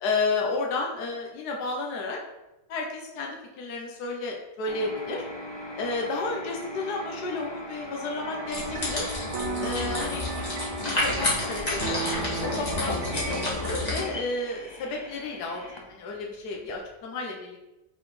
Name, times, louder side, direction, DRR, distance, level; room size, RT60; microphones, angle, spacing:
voice 1, 0.0-2.2 2.7-5.3 5.8-9.1 9.6-10.2 10.8-12.0 12.4-17.7, left 3 dB, 70° left, 0 dB, 1.5 m, -32 dB
sound 1, 4.7-16.7, left 1 dB, 45° left, 0.3 m, -38 dB
sound 2, 8.2-13.9, right 5 dB, 80° right, 0.6 m, -37 dB
sound 3, 8.5-14.0, left 2 dB, 25° left, 1.9 m, -30 dB
6.0 x 4.3 x 4.9 m, 0.95 s
omnidirectional pair, 1.8 m